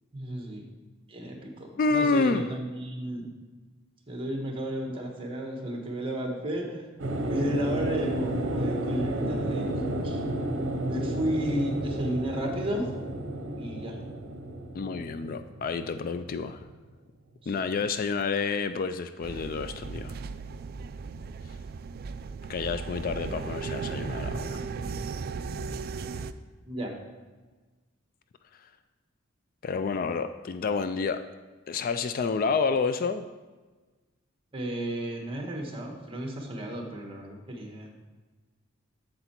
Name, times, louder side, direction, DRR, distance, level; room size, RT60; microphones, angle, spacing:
voice 1, 0.1-0.6 1.1-3.3 4.1-6.9 7.3-9.8 10.0-10.2 10.8-12.9 13.6-14.0 17.4-17.7 26.6-26.9 34.5-37.9, right 1 dB, 25° right, 1 dB, 1.3 m, -33 dB
voice 2, 1.8-2.4 14.7-16.7 17.5-20.2 22.5-24.6 28.6-28.7 29.6-31.2 31.7-33.3, left 4 dB, 45° left, 10 dB, 0.3 m, -29 dB
sound 1, 7.0-16.7, right 1 dB, 65° right, 0.9 m, -32 dB
sound 2, 19.2-26.3, right 4 dB, 50° right, 0.3 m, -36 dB
8.0 x 6.6 x 4.4 m, 1.3 s
head